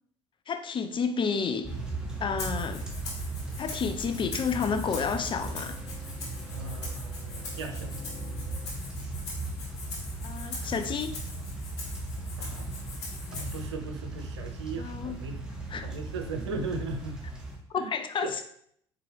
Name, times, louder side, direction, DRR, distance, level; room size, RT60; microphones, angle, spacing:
voice 1, 0.5-1.7 2.2-2.8 3.6-5.8 10.2-11.2 14.8-15.2 15.7-15.9 17.7-18.5, left 6 dB, 35° left, 9 dB, 0.6 m, -30 dB
sound 1, 1.6-17.6, right 2 dB, 5° right, 1.3 m, -37 dB
Rattle (instrument), 2.4-13.7, left 3 dB, 80° left, 1.5 m, -42 dB
voice 2, 6.5-7.9 12.4-12.8 13.3-15.4 15.7-17.2 17.8-17.9 18.2-18.5, right 4 dB, 85° right, 6 dB, 0.6 m, -37 dB
4.3 x 3.7 x 3.3 m, 0.66 s
hypercardioid pair, 60°, 14 cm